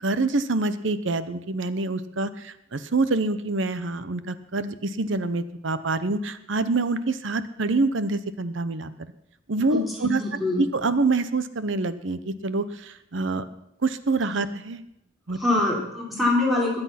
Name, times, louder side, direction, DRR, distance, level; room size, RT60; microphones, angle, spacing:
voice 1, 0.0-8.9 9.5-10.2 10.6-13.4 13.8-14.8 15.3-15.6, right 3 dB, 65° right, 13 dB, 0.9 m, -26 dB
voice 2, 9.7-10.6 15.3-16.8, left 2 dB, ahead, -4 dB, 4.0 m, -24 dB
21.5 x 8.1 x 5.9 m, 0.80 s
head